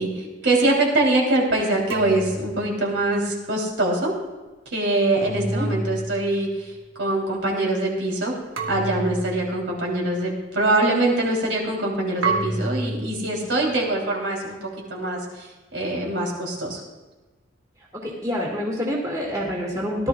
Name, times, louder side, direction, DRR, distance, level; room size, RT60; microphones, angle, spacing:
voice 1, 0.0-4.1 4.6-8.3 8.7-16.8, right 2 dB, 70° right, -1 dB, 3.2 m, -23 dB
sound 1, 1.9-3.3 5.2-6.3 8.6-9.6 12.2-13.3, right 2 dB, 85° right, 1.3 m, -29 dB
voice 2, 5.4-5.7 18.0-20.1, equal, 15° right, -3 dB, 2.2 m, -27 dB
18.0 x 12.0 x 2.4 m, 1.2 s
head